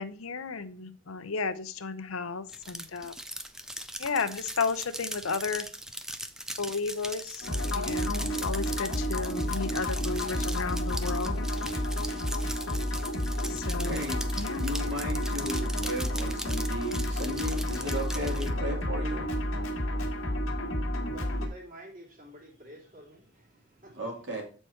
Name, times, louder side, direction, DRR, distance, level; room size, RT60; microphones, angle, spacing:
voice 1, 0.0-3.1 4.0-5.7 6.6-11.5 13.5-14.1 14.4-14.7, left 4 dB, 80° left, 11 dB, 0.7 m, -33 dB
sound 1, 2.5-18.5, right 1 dB, 5° right, 0.3 m, -40 dB
sound 2, 7.4-21.5, equal, 65° left, 1.5 m, -31 dB
voice 2, 13.8-14.2 14.6-19.3 23.9-24.4, equal, 55° right, 0 dB, 2.3 m, -35 dB
voice 3, 21.0-24.1, right 1 dB, 40° right, -1 dB, 2.7 m, -49 dB
7.9 x 4.5 x 4.4 m, 0.37 s
head